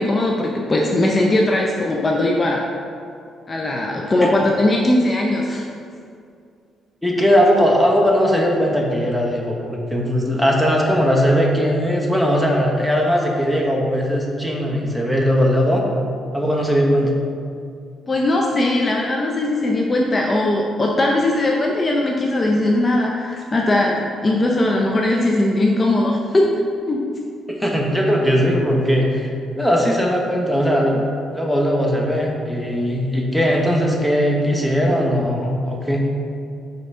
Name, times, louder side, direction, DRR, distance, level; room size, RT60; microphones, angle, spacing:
voice 1, 0.0-2.7 3.5-5.7 18.1-26.5 26.9-27.0, left 1 dB, 30° left, -1 dB, 0.6 m, -19 dB
voice 2, 7.0-15.8 16.3-17.1 27.5-31.1 31.3-36.0, equal, ahead, -2 dB, 1.1 m, -19 dB
5.4 x 3.8 x 5.5 m, 2.3 s
cardioid pair, 90°, 0 cm